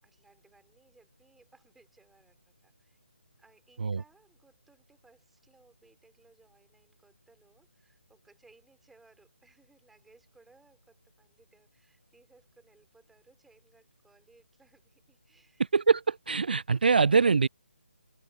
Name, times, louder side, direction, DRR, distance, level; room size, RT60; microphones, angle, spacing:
voice 1, 0.0-3.0 3.4-15.7, right 3 dB, 5° right, 5.4 m, -63 dB
voice 2, 15.7-17.5, right 5 dB, 45° right, 0.3 m, -23 dB
open air
figure-of-eight pair, 150°, 7 cm